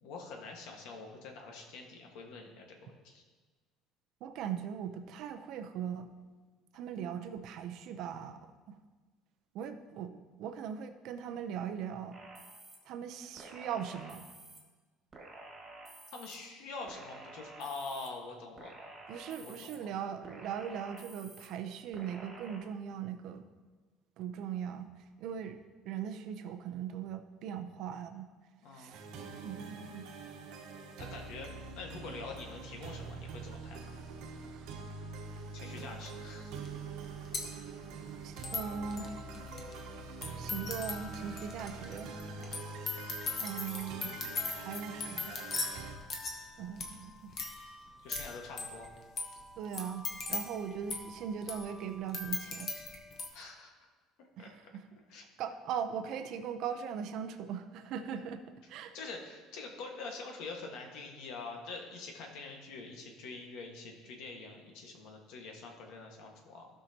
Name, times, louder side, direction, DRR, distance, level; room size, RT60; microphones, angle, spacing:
voice 1, 0.0-3.2 16.1-18.7 19.4-19.9 28.6-29.1 31.0-31.5 31.7-33.9 35.5-36.5 42.3-42.6 48.0-48.9 53.3-53.7 54.2-54.5 55.1-55.2 58.9-66.7, left 3 dB, 65° left, 2 dB, 1.6 m, -45 dB
voice 2, 4.2-6.1 6.7-8.8 9.5-12.2 12.9-14.3 19.1-23.4 24.2-24.9 25.2-25.6 25.8-28.3 28.7-29.1 29.4-30.1 38.2-39.2 40.3-42.1 43.4-44.1 44.6-45.3 46.6-47.3 49.6-52.7 54.4-55.0 55.4-58.4 58.7-58.9, right 8 dB, 50° right, 7 dB, 0.6 m, -39 dB
sound 1, 12.1-12.8 13.4-14.6 15.1-16.4 16.9-18.1 18.6-19.8 20.2-21.5 21.9-22.6, right 2 dB, 20° right, 1.8 m, -50 dB
sound 2, 28.9-46.0, right 4 dB, 70° right, 1.2 m, -45 dB
sound 3, 35.8-35.9 36.7-36.8 36.9-53.3, left 3 dB, 30° left, 1.1 m, -40 dB
15.5 x 5.7 x 2.9 m, 1.3 s
cardioid pair, 170°, 0 cm